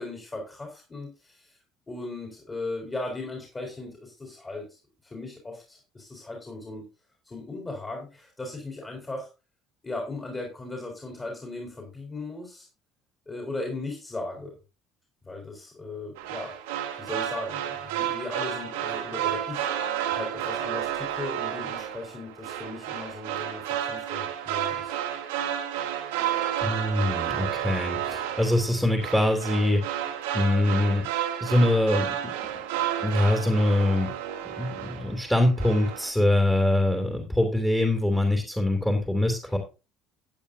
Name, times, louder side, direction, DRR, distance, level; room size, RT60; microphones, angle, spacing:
voice 1, 0.0-1.6 1.9-6.8 7.2-9.3 9.8-12.7 13.3-14.5 15.2-16.5 17.0-24.9, left 2 dB, 25° left, 0 dB, 4.7 m, -37 dB
sound 1, 16.2-35.3 35.6-36.1, right 10 dB, 75° right, 1.9 m, -31 dB
voice 2, 26.6-29.9 30.3-31.1 31.4-32.3 33.0-34.1 34.6-39.6, left 1 dB, 5° left, 2 dB, 2.9 m, -23 dB
14.0 x 8.8 x 2.7 m, 0.30 s
hypercardioid pair, 60°, 0 cm